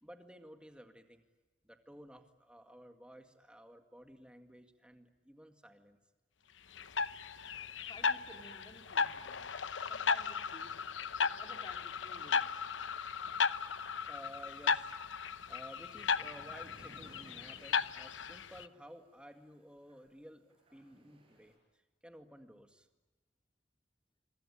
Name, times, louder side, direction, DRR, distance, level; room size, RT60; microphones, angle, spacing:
voice 1, 0.0-1.2 1.6-6.0 14.1-15.0 15.5-22.9, equal, 5° right, 6 dB, 2.0 m, -54 dB
sound 1, 6.8-18.7, left 5 dB, 90° left, 0.8 m, -36 dB
voice 2, 7.8-9.5 9.9-10.8 11.2-12.7 13.2-13.3, left 1 dB, 25° left, 3 dB, 3.4 m, -55 dB
sound 2, 15.4-20.1 20.4-21.6, right 1 dB, 30° right, 6.0 m, -60 dB
26.5 x 24.5 x 8.7 m, 1.2 s
head